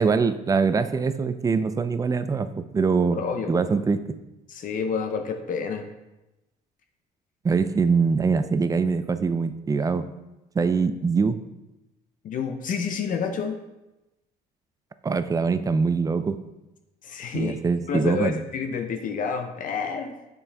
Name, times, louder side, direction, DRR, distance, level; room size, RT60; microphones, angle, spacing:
voice 1, 0.0-3.2 3.5-4.0 7.4-10.0 10.5-11.4 15.0-16.4 17.3-18.4, right 5 dB, 20° right, 11 dB, 0.4 m, -23 dB
voice 2, 3.1-3.6 4.5-5.9 12.2-13.6 17.0-17.6 17.9-20.1, left 6 dB, 50° left, 5 dB, 0.6 m, -29 dB
7.1 x 5.4 x 3.4 m, 1.0 s
cardioid pair, 110°, 17 cm